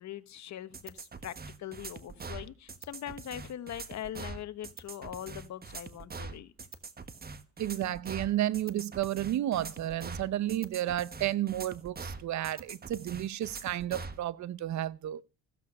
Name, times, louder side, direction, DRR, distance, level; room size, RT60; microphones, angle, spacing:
voice 1, 0.0-6.5, left 11 dB, 65° left, 1.2 m, -42 dB
sound 1, 0.7-14.2, right 4 dB, 30° right, 1.5 m, -43 dB
voice 2, 7.6-15.2, right 13 dB, 70° right, 0.7 m, -32 dB
15.0 x 8.3 x 5.4 m
cardioid pair, 90°, 30 cm